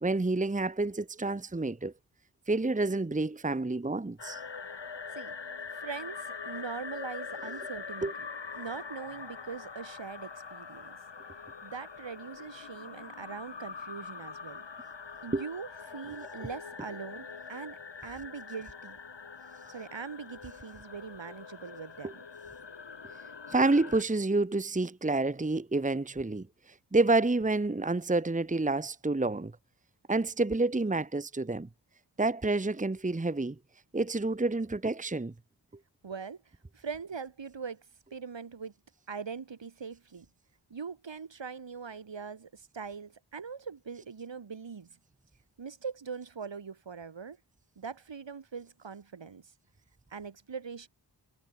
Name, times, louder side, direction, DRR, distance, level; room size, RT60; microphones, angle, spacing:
voice 1, 0.0-1.9 2.5-4.4 8.0-8.1 15.3-15.4 22.0-22.1 23.5-29.5 30.1-31.7 32.2-33.6 33.9-35.3, right 2 dB, 20° right, 1.1 m, -28 dB
sound 1, 4.2-24.0, left 5 dB, 75° left, 7.4 m, -44 dB
voice 2, 5.7-8.3 8.6-11.0 11.6-14.6 15.2-19.0 19.7-22.2 36.0-36.4 36.7-37.8 38.1-38.7 39.1-40.3 40.7-44.9 45.6-47.4 47.8-49.5 50.1-50.9, right 5 dB, 85° right, 7.0 m, -42 dB
wide cardioid pair, 75°, 43 cm